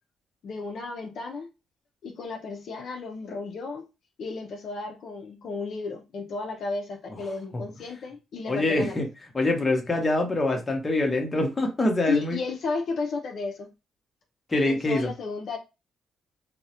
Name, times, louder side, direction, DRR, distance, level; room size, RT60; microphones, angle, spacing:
voice 1, 0.4-1.5 2.0-3.9 4.2-9.0 12.1-13.7 14.6-15.6, left 4 dB, 65° left, 0.4 m, -33 dB
voice 2, 8.5-9.1 9.3-12.4 14.5-15.1, left 2 dB, 25° left, 0.7 m, -24 dB
2.3 x 2.0 x 2.7 m
cardioid pair, 90°, 0 cm